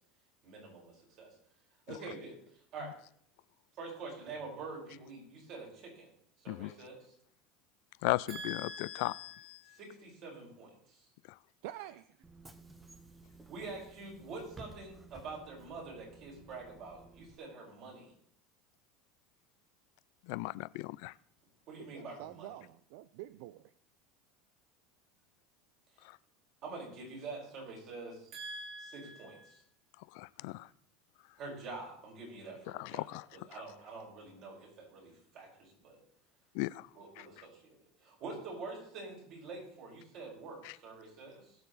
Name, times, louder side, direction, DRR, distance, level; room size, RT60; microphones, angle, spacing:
voice 1, 0.4-1.3 1.9-2.4 2.7-3.0 3.8-6.1 6.4-7.0 8.3-11.1 13.5-18.1 21.7-22.5 26.6-29.6 31.4-36.0 37.0-41.6, right 3 dB, 50° right, -2 dB, 5.6 m, -46 dB
voice 2, 8.0-9.6 20.3-21.1 30.2-30.7 32.8-33.2 36.5-36.9 37.2-37.3, left 22 dB, 65° left, 19 dB, 0.3 m, -36 dB
voice 3, 11.6-12.0 21.8-23.7, right 14 dB, 70° right, 15 dB, 0.4 m, -47 dB
Bus / Engine, 12.2-17.4, right 2 dB, 10° right, 0.9 m, -55 dB
20.0 x 6.9 x 4.1 m, 0.64 s
supercardioid pair, 140°, 0 cm